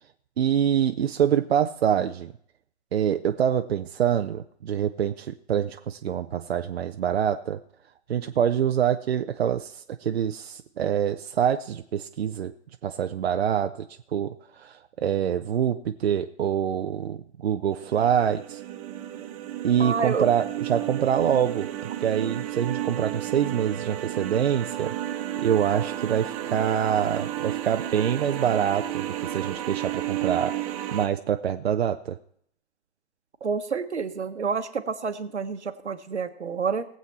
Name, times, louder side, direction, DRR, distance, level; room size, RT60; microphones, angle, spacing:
voice 1, 0.4-2.3 2.9-7.6 8.1-12.5 12.8-13.7 14.1-18.6 19.6-24.9 25.4-30.5 30.9-32.2, right 9 dB, 65° right, 7 dB, 0.6 m, -25 dB
sound 1, 17.7-31.1, right 13 dB, 30° right, 1.2 m, -32 dB
voice 2, 19.8-20.3 33.4-36.9, right 5 dB, 85° right, 9 dB, 1.2 m, -28 dB
19.0 x 7.7 x 4.2 m, 0.68 s
figure-of-eight pair, 130°, 34 cm